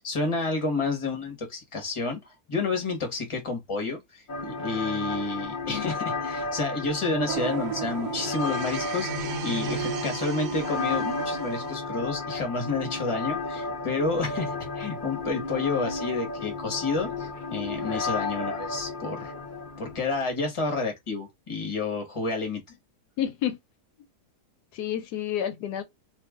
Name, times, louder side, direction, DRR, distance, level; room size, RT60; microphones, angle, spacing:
voice 1, 0.0-2.2 2.5-19.3 19.8-22.6, left 3 dB, 20° left, 1.1 m, -30 dB
sound 1, 4.3-20.3, left 3 dB, 50° left, 0.6 m, -33 dB
sound 2, 7.3-11.8, right 8 dB, 75° right, 1.2 m, -34 dB
voice 2, 23.2-23.6 24.7-25.8, left 10 dB, 80° left, 1.2 m, -30 dB
2.8 x 2.5 x 3.5 m
omnidirectional pair, 1.7 m